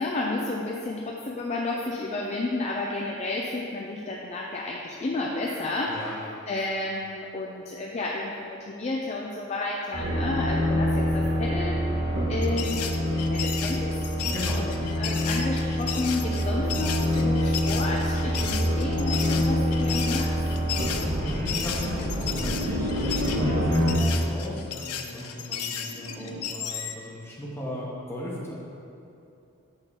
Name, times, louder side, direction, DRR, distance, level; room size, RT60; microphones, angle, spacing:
voice 1, 0.0-11.8 12.3-12.9 13.3-14.1 14.6-14.7 15.0-20.3, left 2 dB, 30° left, -1 dB, 0.3 m, -31 dB
voice 2, 5.9-6.2 14.3-14.9 21.2-28.5, equal, 10° left, -5 dB, 1.0 m, -36 dB
sound 1, 9.9-24.0, equal, 50° right, 1.4 m, -26 dB
sound 2, 12.4-27.0, left 8 dB, 85° left, 0.5 m, -34 dB
sound 3, 21.3-24.0 24.9-26.4, left 1 dB, 90° right, 0.7 m, -34 dB
7.0 x 3.7 x 5.5 m, 2.8 s
head